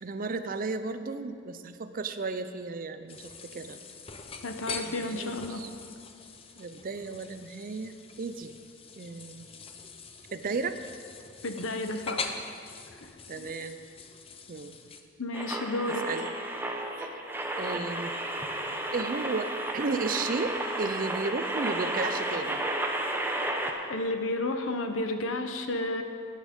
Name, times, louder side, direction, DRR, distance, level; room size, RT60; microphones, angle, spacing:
voice 1, 0.0-3.8 4.8-5.7 6.6-8.6 9.0-9.5 10.3-10.8 13.3-13.8 14.5-14.8 16.0-16.3 17.0-17.2 17.6-18.1 18.9-22.6, right 4 dB, 40° right, 10 dB, 0.5 m, -34 dB
sound 1, 3.1-15.0, left 4 dB, 30° left, 0.6 m, -43 dB
voice 2, 4.4-5.6 11.4-12.3 13.0-13.1 13.4-13.5 15.2-16.1 23.9-26.0, left 2 dB, 75° left, 7 dB, 0.9 m, -32 dB
sound 2, 15.3-23.7, right 1 dB, 10° right, 0.7 m, -32 dB
11.0 x 9.1 x 5.3 m, 2.3 s
head